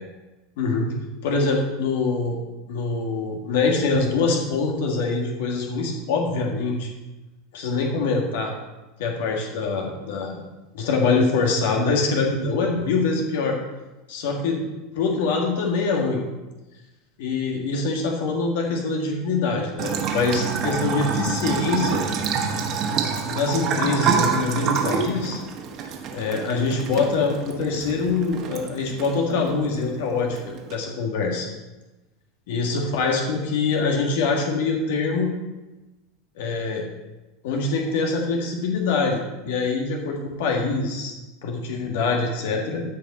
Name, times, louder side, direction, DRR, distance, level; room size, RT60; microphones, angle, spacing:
voice 1, 0.6-0.9 1.2-2.4 2.7-6.9 7.5-8.5 9.0-10.4 10.7-13.6 14.1-14.6 14.9-16.2 17.2-22.0 23.2-25.4 26.1-31.5 32.5-35.3 36.4-36.9 37.4-41.1 41.4-42.8, left 4 dB, 75° left, 1 dB, 1.7 m, -24 dB
Bathtub (filling or washing) / Trickle dribble, 19.8-30.7, right 6 dB, 45° right, 1.4 m, -27 dB
13.5 x 5.0 x 4.2 m, 1.1 s
supercardioid pair, 110°, 0 cm